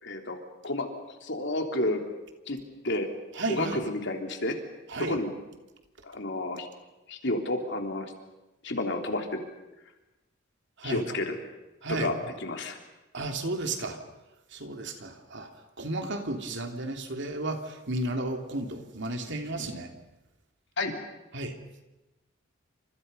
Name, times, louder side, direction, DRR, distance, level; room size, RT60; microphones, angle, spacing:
voice 1, 0.0-0.4 0.6-2.0 2.5-2.6 2.8-3.1 3.5-4.6 5.0-5.3 6.0-6.7 7.1-8.1 8.6-9.4 10.8-11.4 11.9-12.8 20.8-20.9, left 2 dB, 60° left, 4 dB, 3.6 m, -30 dB
voice 2, 3.3-3.8 4.9-5.2 10.8-11.1 11.8-12.1 13.1-14.0 14.5-15.5 15.8-19.9 21.3-21.5, right 2 dB, 60° right, 5 dB, 3.0 m, -33 dB
29.5 x 26.5 x 5.6 m, 1.0 s
head